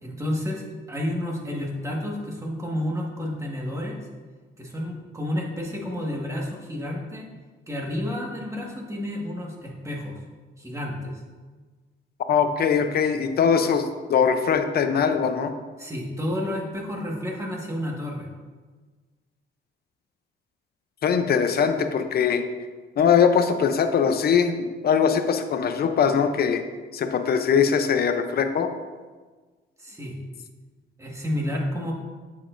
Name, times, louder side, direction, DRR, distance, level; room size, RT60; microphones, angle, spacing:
voice 1, 0.0-4.0 4.6-7.3 7.7-10.2 10.6-11.2 15.8-18.3 29.8-30.2 31.0-31.9, left 1 dB, 15° right, -2 dB, 1.7 m, -30 dB
voice 2, 12.3-15.5 21.0-22.4 23.0-26.6 26.9-28.7, left 6 dB, 50° left, 7 dB, 0.7 m, -21 dB
8.8 x 6.9 x 2.6 m, 1.4 s
cardioid pair, 90°, 20 cm